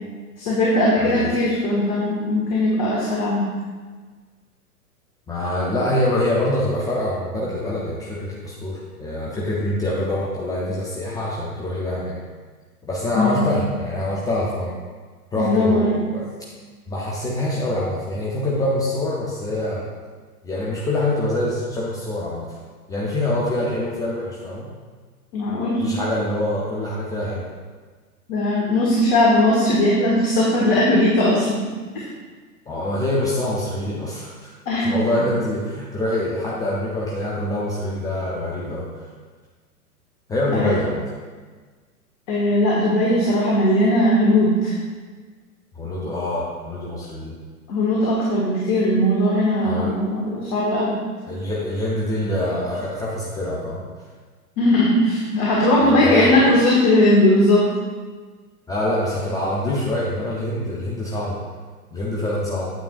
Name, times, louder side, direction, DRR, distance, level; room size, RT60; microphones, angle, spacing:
voice 1, 0.4-3.5 13.1-13.4 15.3-16.0 25.3-25.8 28.3-31.8 34.6-35.2 40.5-40.7 42.3-44.7 47.7-50.9 54.6-57.7, left 1 dB, 35° left, -5 dB, 1.7 m, -19 dB
voice 2, 1.0-1.3 5.3-12.2 12.8-14.7 15.3-16.2 16.9-19.8 20.4-22.6 22.9-24.7 25.8-27.5 32.7-34.5 34.8-38.9 40.3-41.0 45.7-47.3 49.6-49.9 50.2-50.4 51.2-53.8 55.8-56.6 58.7-61.4 61.9-62.7, left 1 dB, 10° left, -6 dB, 0.6 m, -25 dB
8.9 x 8.6 x 2.5 m, 1.5 s
figure-of-eight pair, 110°, 46 cm